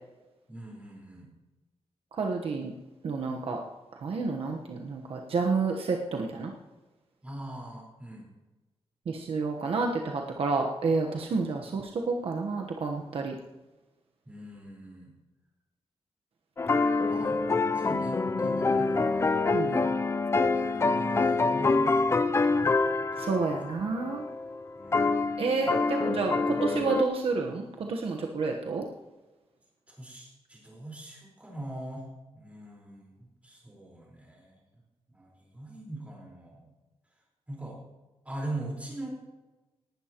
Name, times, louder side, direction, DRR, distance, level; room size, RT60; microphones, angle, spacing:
voice 1, 0.5-1.3 7.2-8.3 14.2-15.1 17.1-17.4 17.7-19.2 19.6-20.0 20.5-22.0 22.4-22.7 23.2-23.6 24.7-25.1 29.9-32.0 32.3-34.6 35.1-36.7 37.5-37.8 38.2-39.1, right 1 dB, 10° right, -2 dB, 4.4 m, -42 dB
voice 2, 2.2-2.7 3.0-3.6 4.0-6.5 9.1-13.3 19.5-19.8 23.2-24.2 25.4-28.8, right 4 dB, 60° right, 1 dB, 1.1 m, -30 dB
sound 1, 16.6-27.0, left 3 dB, 25° left, 0.5 m, -26 dB
18.5 x 11.5 x 3.0 m, 1.1 s
wide cardioid pair, 150°, 11 cm